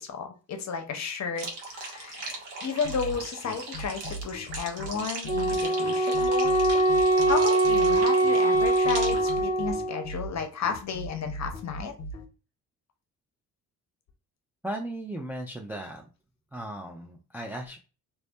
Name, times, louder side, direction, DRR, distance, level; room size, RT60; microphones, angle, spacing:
voice 1, 0.0-1.5 1.7-6.5 7.3-11.9, left 6 dB, 40° left, 5 dB, 0.7 m, -33 dB
sound 1, 1.4-9.4, right 3 dB, 65° right, 0.8 m, -39 dB
sound 2, 2.8-12.3, right 1 dB, 75° left, 0.6 m, -38 dB
Wind instrument woodwind instrument, 5.3-10.1, right 2 dB, 35° right, 0.8 m, -23 dB
voice 2, 14.6-16.1 16.5-17.8, right 1 dB, 5° right, 1 dB, 0.3 m, -36 dB
2.2 x 2.0 x 2.7 m, 0.33 s
hypercardioid pair, 45°, 42 cm